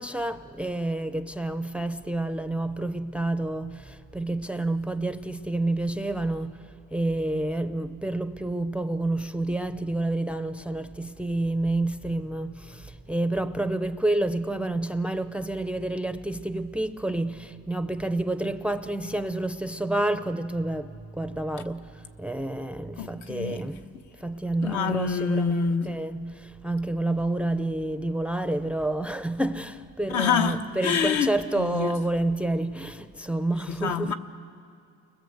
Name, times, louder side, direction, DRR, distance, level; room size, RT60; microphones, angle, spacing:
voice 1, 0.0-6.6 6.9-23.9 24.2-34.1, right 2 dB, 5° right, 0.5 m, -29 dB
voice 2, 23.0-23.6 24.6-25.9 30.1-32.0 33.7-34.1, left 6 dB, 70° left, 1.3 m, -27 dB
30.0 x 20.5 x 7.9 m
cardioid pair, 135°, 30 cm